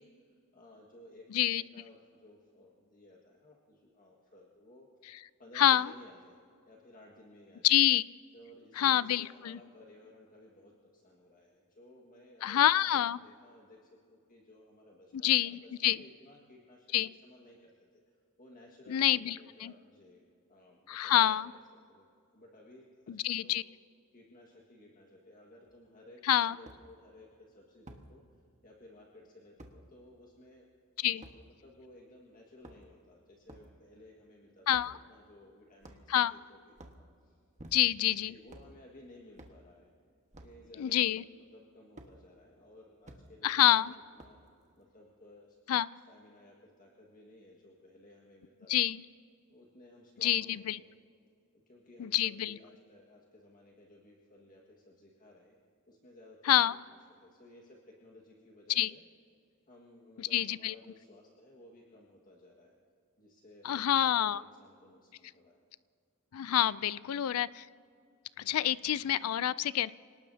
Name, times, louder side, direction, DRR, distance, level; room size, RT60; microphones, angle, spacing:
voice 1, 0.0-4.9 5.4-6.4 6.7-7.8 8.3-16.9 17.2-18.0 18.4-20.2 20.5-21.3 21.9-22.1 22.3-23.6 24.1-30.7 31.0-37.4 38.2-39.9 40.4-44.4 44.7-45.7 46.0-48.7 49.5-50.9 51.5-55.6 55.9-56.4 56.7-59.0 59.7-62.7 63.2-63.8 64.2-65.7, left 1 dB, 40° left, -2 dB, 1.7 m, -57 dB
voice 2, 1.3-1.6 5.6-5.9 7.6-8.0 8.8-9.6 12.4-13.2 15.1-16.0 16.9-17.1 18.9-19.4 19.6-19.7 20.9-21.5 23.1-23.6 26.2-26.6 31.0-31.2 34.7-35.0 36.1-36.3 37.7-38.3 40.8-41.2 43.4-43.9 45.7-45.9 48.7-49.0 50.2-50.8 52.0-52.6 56.5-56.8 58.8-58.9 60.2-60.7 63.6-64.4 66.3-67.7 68.4-69.9, left 12 dB, 75° left, 18 dB, 0.4 m, -27 dB
sound 1, 25.7-25.8 26.7-26.8 27.9-28.1 29.6-29.8 31.2-31.4 32.5-33.0 33.5-33.7 34.7-35.0 35.8-36.2 36.7-37.0 37.6-38.1 38.5-38.7 39.4-39.6 40.3-40.6 42.0-42.1 43.0-43.2 44.2-44.5, right 1 dB, 35° right, 1.4 m, -52 dB
27.5 x 18.5 x 2.8 m, 2.3 s
head